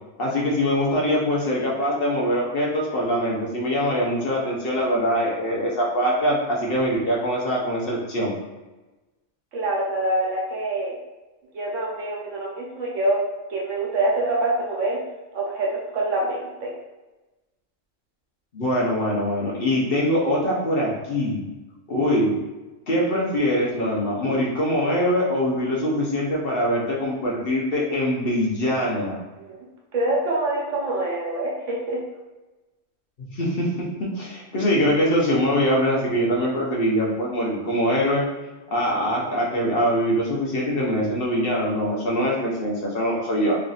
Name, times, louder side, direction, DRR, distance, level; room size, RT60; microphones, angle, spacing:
voice 1, 0.2-8.3 18.5-21.4 21.9-22.3 22.9-29.2 33.3-38.2 38.7-43.6, equal, 50° left, -4 dB, 1.0 m, -23 dB
voice 2, 9.5-10.9 11.5-13.2 13.5-15.0 15.3-16.7 29.5-29.6 29.9-32.0, right 2 dB, 70° right, -3 dB, 1.3 m, -25 dB
3.2 x 2.6 x 3.9 m, 1.1 s
omnidirectional pair, 1.3 m